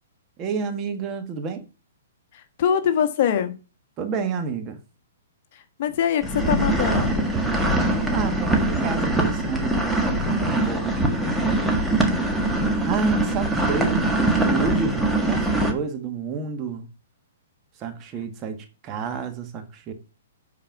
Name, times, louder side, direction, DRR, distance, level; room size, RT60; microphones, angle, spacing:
voice 1, 0.4-1.7 4.0-4.8 8.1-9.7 10.0-11.4 12.8-16.9 17.8-19.9, right 5 dB, 25° right, 1.6 m, -30 dB
voice 2, 2.3-3.5 5.5-7.3, left 8 dB, 50° left, 1.4 m, -24 dB
sound 1, 6.2-15.7, right 2 dB, 5° right, 1.6 m, -22 dB
9.2 x 4.7 x 5.9 m
hypercardioid pair, 140°, 0 cm